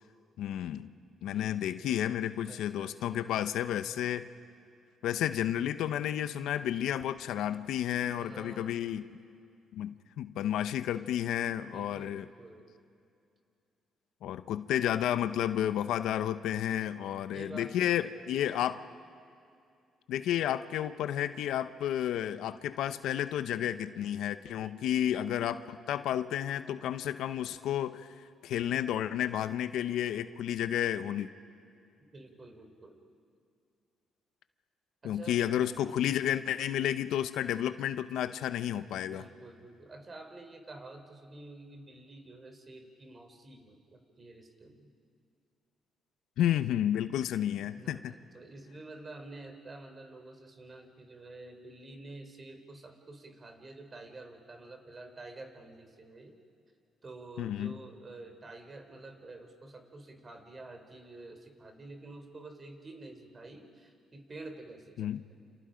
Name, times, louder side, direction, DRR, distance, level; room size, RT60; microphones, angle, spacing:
voice 1, 0.4-0.9 1.2-4.3 5.0-9.0 9.7-12.2 14.2-18.8 20.1-28.1 28.4-31.3 35.0-39.2 46.4-48.1 57.4-57.8 65.0-65.2, left 11 dB, 85° left, 12 dB, 0.8 m, -31 dB
voice 2, 1.2-1.8 2.5-3.3 8.2-9.0 11.6-12.7 16.5-18.2 24.6-25.1 32.1-33.0 35.0-35.4 35.9-36.5 38.9-44.9 47.7-56.3 57.0-65.4, right 2 dB, 35° right, 5 dB, 3.5 m, -49 dB
29.0 x 29.0 x 5.2 m, 2.4 s
cardioid pair, 90°, 0 cm